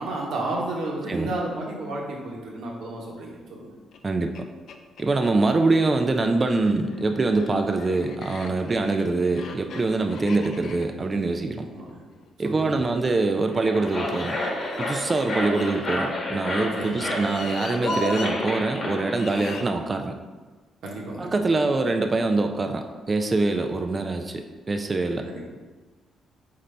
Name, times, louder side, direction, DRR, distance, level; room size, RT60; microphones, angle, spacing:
voice 1, 0.0-3.6 11.7-12.0 12.4-12.8 16.8-17.0 20.8-21.3 25.2-25.4, right 2 dB, 75° right, -2 dB, 1.1 m, -32 dB
sound 1, 3.9-4.0 4.3-4.4 4.7-5.6 6.5-12.7 13.8-16.1 16.8-18.3 19.1-19.7, left 5 dB, 70° left, 0.4 m, -42 dB
voice 2, 4.0-4.4 5.0-11.7 12.4-14.4 14.8-20.2 21.2-25.3, right 3 dB, 30° right, 5 dB, 0.3 m, -24 dB
sound 2, 13.4-19.6, left 1 dB, 45° left, 1.0 m, -30 dB
4.1 x 4.0 x 3.3 m, 1.3 s
cardioid pair, 90°, 0 cm